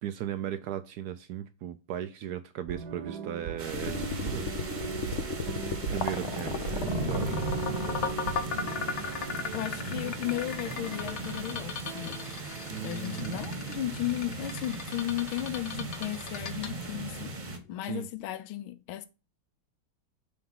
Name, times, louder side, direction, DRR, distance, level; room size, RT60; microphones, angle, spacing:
voice 1, 0.0-4.5 5.9-7.4 12.7-13.5 17.8-18.1, right 10 dB, 85° right, 0.8 m, -37 dB
sound 1, 2.7-14.1 14.4-14.5, right 8 dB, 60° right, 1.4 m, -40 dB
sound 2, 3.6-17.6, right 2 dB, 30° right, 1.0 m, -38 dB
sound 3, 3.7-17.8, left 6 dB, 55° left, 0.8 m, -36 dB
voice 2, 9.5-12.2 12.8-17.3 17.7-19.1, left 14 dB, 80° left, 1.5 m, -35 dB
6.7 x 3.5 x 5.5 m
omnidirectional pair, 2.2 m